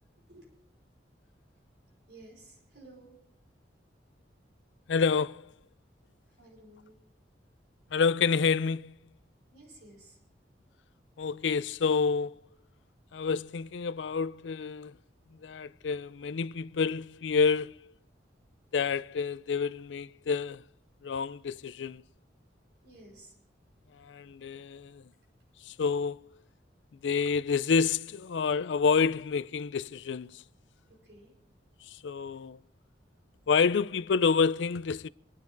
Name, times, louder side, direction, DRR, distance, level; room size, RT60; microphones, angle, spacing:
voice 1, 2.1-3.2 6.4-7.0 9.5-10.2 22.8-23.3 30.9-31.3, right 2 dB, 65° right, 5.1 m, -53 dB
voice 2, 4.9-5.5 7.9-8.9 11.2-12.4 13.1-15.0 15.4-17.8 18.7-20.6 21.0-22.0 24.0-25.0 25.6-26.2 27.0-30.4 31.9-32.6 33.5-35.1, left 5 dB, 85° left, 0.4 m, -28 dB
25.5 x 9.5 x 3.9 m
head